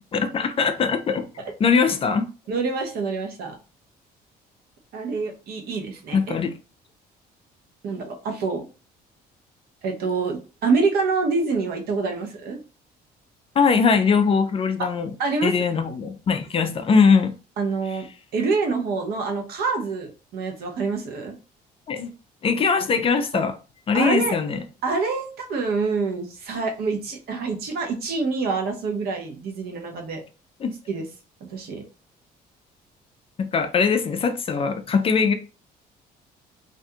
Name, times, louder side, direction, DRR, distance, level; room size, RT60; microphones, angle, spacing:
voice 1, 0.1-1.3 1.6-2.3 6.1-6.5 13.6-15.1 15.4-17.3 21.9-22.1 22.4-23.5 23.9-24.6 30.6-30.7 33.5-35.3, left 5 dB, 35° left, 0.4 m, -21 dB
voice 2, 2.5-3.6 4.9-6.3 7.8-8.6 9.8-12.6 15.2-15.5 17.6-18.0 18.3-21.4 23.9-24.4 24.8-30.2 30.9-31.0 31.5-31.8, right 4 dB, 70° right, 0.8 m, -26 dB
2.5 x 2.3 x 2.6 m
cardioid pair, 110°, 17 cm